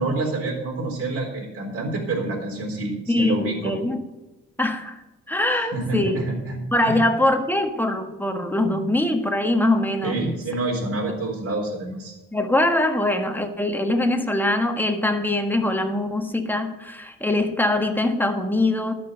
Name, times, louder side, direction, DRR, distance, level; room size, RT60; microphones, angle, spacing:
voice 1, 0.0-3.7 5.5-7.0 10.0-12.1, right 2 dB, 50° right, -2 dB, 3.9 m, -27 dB
voice 2, 3.1-4.0 4.6-5.0 5.3-6.3 6.7-10.3 12.3-18.9, left 1 dB, 5° left, 5 dB, 1.6 m, -23 dB
12.0 x 6.3 x 7.7 m, 1.0 s
cardioid pair, 90°, 30 cm